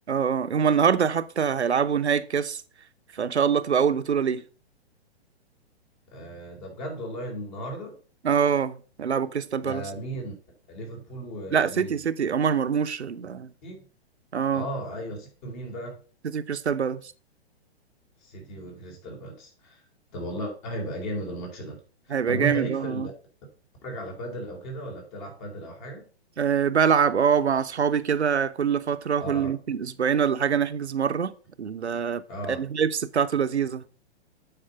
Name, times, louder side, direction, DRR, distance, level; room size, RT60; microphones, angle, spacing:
voice 1, 0.1-2.6 3.1-4.4 8.2-9.8 11.5-13.5 14.3-14.7 16.2-17.1 22.1-23.1 26.4-31.3 31.6-32.2 32.5-33.8, right 7 dB, 90° right, 0.7 m, -24 dB
voice 2, 6.1-8.0 9.6-10.3 10.7-12.0 13.6-13.9 14.5-16.0 18.2-19.8 20.1-21.8 22.0-23.0 23.8-26.1 29.2-29.5 32.3-32.6, right 1 dB, 45° left, 3.9 m, -35 dB
9.0 x 4.3 x 5.5 m
hypercardioid pair, 120°, 32 cm